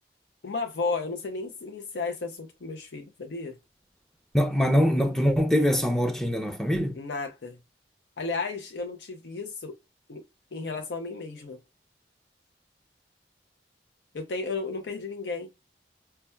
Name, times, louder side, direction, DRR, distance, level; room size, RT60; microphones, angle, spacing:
voice 1, 0.4-3.6 6.9-7.6 8.2-9.8 10.1-10.2 10.5-11.6 14.1-15.5, left 3 dB, 80° left, 0.6 m, -33 dB
voice 2, 4.3-7.0, equal, 5° left, 0.5 m, -23 dB
5.6 x 2.2 x 2.2 m
head